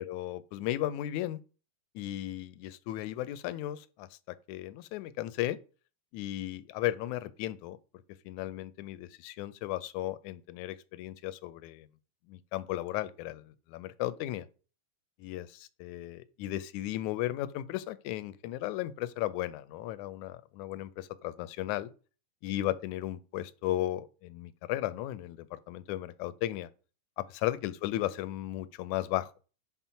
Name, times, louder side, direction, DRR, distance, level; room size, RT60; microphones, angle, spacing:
voice 1, 0.0-1.4 2.0-4.1 4.5-5.6 6.1-7.8 8.3-11.9 12.3-14.5 15.2-21.9 22.4-26.7 27.2-29.3, left 14 dB, 80° left, 1.9 m, -35 dB
6.0 x 3.9 x 5.6 m
omnidirectional pair, 3.4 m